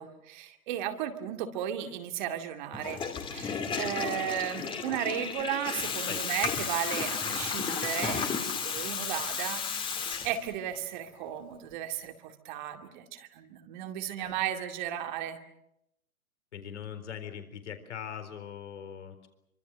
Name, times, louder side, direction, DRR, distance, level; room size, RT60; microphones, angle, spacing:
voice 1, 0.0-3.0 3.3-9.9 10.2-15.4, right 10 dB, 35° right, 6 dB, 2.3 m, -35 dB
Water tap faucet / Toilet flush, 2.7-10.8, left 6 dB, 10° left, 2.5 m, -33 dB
voice 2, 16.5-19.3, left 8 dB, 55° left, 9 dB, 4.1 m, -41 dB
27.0 x 24.5 x 6.6 m, 0.80 s
figure-of-eight pair, 125°, 42 cm